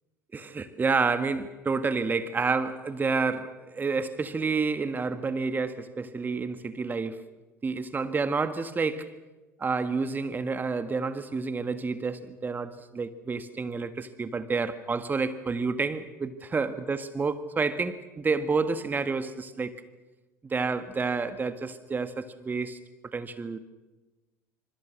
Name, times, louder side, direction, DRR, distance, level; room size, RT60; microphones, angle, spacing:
voice 1, 0.3-7.3 7.6-9.1 9.6-19.8 20.4-22.8 23.1-23.6, right 4 dB, 20° right, 1.6 m, -29 dB
28.0 x 26.5 x 6.4 m
figure-of-eight pair, 70°, 9 cm